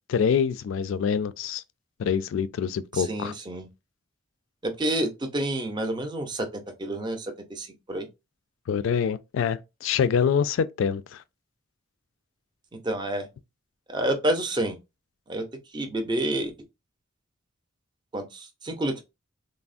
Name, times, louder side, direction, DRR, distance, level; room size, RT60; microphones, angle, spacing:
voice 1, 0.1-1.6 2.0-3.3 8.7-11.2, left 7 dB, 75° left, 0.3 m, -25 dB
voice 2, 2.9-3.7 4.6-8.1 12.7-13.3 13.9-14.8 15.3-15.5 15.7-16.5 18.1-19.0, right 1 dB, 20° right, 0.5 m, -29 dB
3.3 x 2.0 x 2.4 m
head